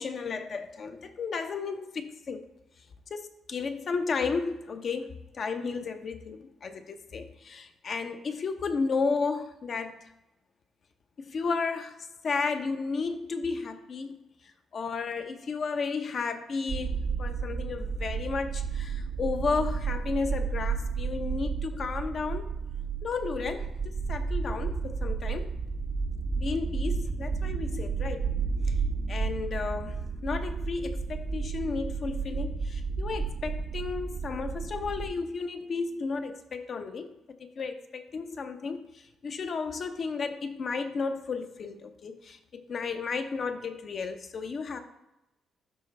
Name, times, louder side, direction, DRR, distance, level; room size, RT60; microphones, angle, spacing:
voice 1, 0.0-2.4 3.1-10.0 11.2-12.0 12.2-14.2 14.4-22.5 23.0-25.6 26.4-28.3 28.7-28.8 29.1-37.1 37.4-44.8, left 4 dB, 50° left, 7 dB, 0.7 m, -33 dB
sound 1, 16.7-35.1, right 5 dB, 40° right, 0.5 m, -32 dB
12.0 x 4.0 x 3.3 m, 0.92 s
cardioid pair, 90°, 0 cm